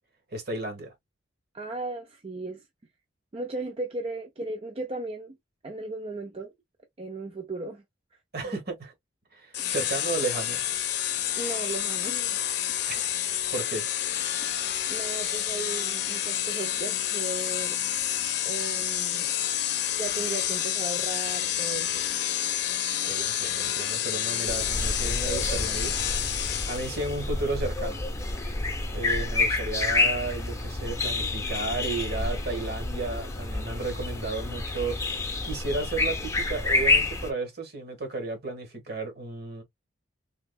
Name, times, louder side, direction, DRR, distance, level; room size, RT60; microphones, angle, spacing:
voice 1, 0.3-0.9 8.3-8.9 9.3-10.6 12.9-13.8 23.0-25.9 26.7-28.0 28.9-39.6, right 3 dB, 55° right, 1.3 m, -33 dB
voice 2, 1.5-2.6 3.3-5.4 5.6-6.5 7.0-7.8 11.4-12.4 14.9-17.8 18.4-19.3 20.0-22.0, right 2 dB, 30° right, 0.5 m, -36 dB
sound 1, 9.5-27.1, left 11 dB, 60° left, 0.6 m, -29 dB
sound 2, 24.5-37.3, left 2 dB, 15° left, 0.7 m, -29 dB
3.5 x 2.9 x 2.2 m
head